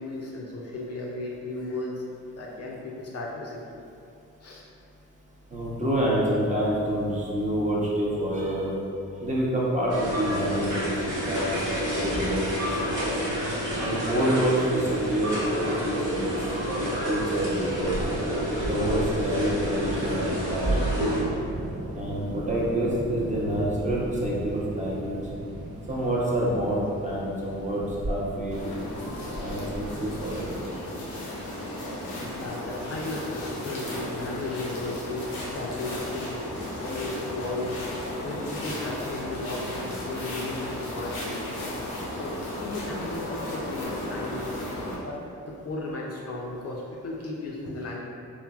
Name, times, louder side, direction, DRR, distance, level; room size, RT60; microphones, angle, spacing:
voice 1, 0.0-2.0 2.4-3.6 4.4-4.7 32.1-36.4 36.7-37.7 38.2-41.5 41.8-44.5 45.0-45.2 45.5-48.0, left 2 dB, 45° left, -3 dB, 0.5 m, -35 dB
voice 2, 5.5-8.7 9.2-13.2 13.8-16.4 16.7-18.0 18.6-20.8 22.0-25.2 25.9-28.7 29.4-30.5, right 1 dB, 20° right, -6 dB, 0.7 m, -28 dB
sound 1, 9.9-21.2, right 1 dB, 60° right, 1.1 m, -29 dB
Thunder, 17.5-31.1, right 1 dB, 80° right, 0.5 m, -37 dB
sound 2, 28.5-44.9, left 1 dB, 85° left, 0.6 m, -35 dB
3.1 x 2.0 x 2.3 m, 2.6 s
supercardioid pair, 45°, 35 cm